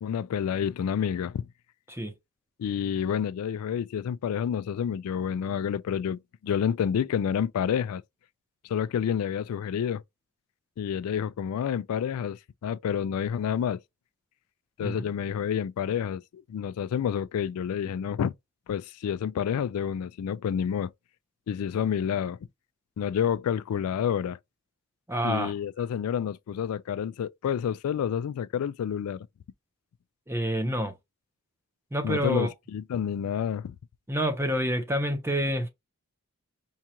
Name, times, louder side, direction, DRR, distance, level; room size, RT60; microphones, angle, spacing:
voice 1, 0.0-1.5 2.6-8.0 8.6-10.0 10.8-13.8 14.8-18.3 18.7-20.9 21.5-22.4 23.0-24.4 25.2-29.3 32.0-33.7, left 8 dB, 80° left, 0.3 m, -29 dB
voice 2, 14.8-15.1 25.1-25.5 30.3-30.9 31.9-32.5 34.1-35.7, equal, 10° right, 0.8 m, -28 dB
4.6 x 2.5 x 2.9 m
head